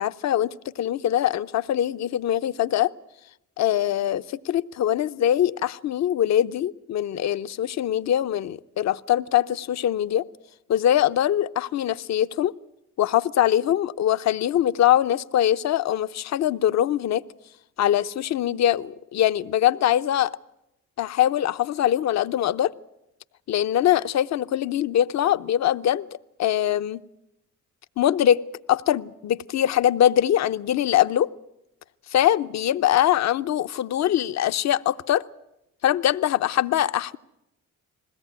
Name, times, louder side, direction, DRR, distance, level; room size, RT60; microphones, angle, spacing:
voice 1, 0.0-2.9 3.6-10.3 10.7-12.5 13.0-17.2 17.8-20.3 21.0-22.7 23.5-26.1 26.4-27.0 28.0-28.4 28.7-31.3 32.1-35.2 35.8-37.2, left 11 dB, 60° left, 0.7 m, -22 dB
21.0 x 17.0 x 9.4 m
cardioid pair, 90°, 30 cm